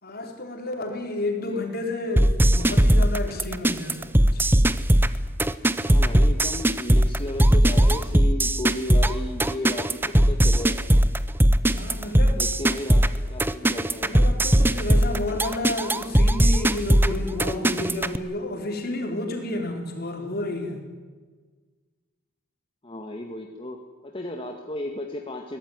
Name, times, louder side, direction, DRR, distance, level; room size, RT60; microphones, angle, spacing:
voice 1, 0.0-4.5 11.7-12.4 14.0-20.8, left 2 dB, 45° left, 3 dB, 4.2 m, -31 dB
sound 1, 2.2-18.2, right 1 dB, 10° right, 0.7 m, -19 dB
voice 2, 5.8-11.0 12.4-14.1 22.8-23.8 24.0-25.6, left 1 dB, 25° left, 2 dB, 1.9 m, -34 dB
23.0 x 18.0 x 9.6 m, 1.4 s
head